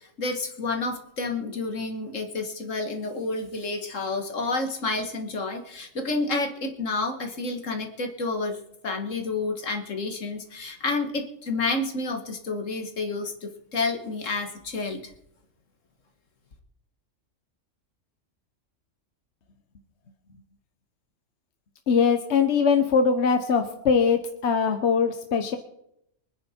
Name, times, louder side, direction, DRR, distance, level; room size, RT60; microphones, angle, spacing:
voice 1, 0.2-8.6 8.8-15.1, left 3 dB, 80° left, 5 dB, 2.1 m, -29 dB
voice 2, 21.9-25.6, left 5 dB, 65° left, 7 dB, 1.3 m, -22 dB
24.5 x 9.8 x 4.4 m, 0.75 s
omnidirectional pair, 1.3 m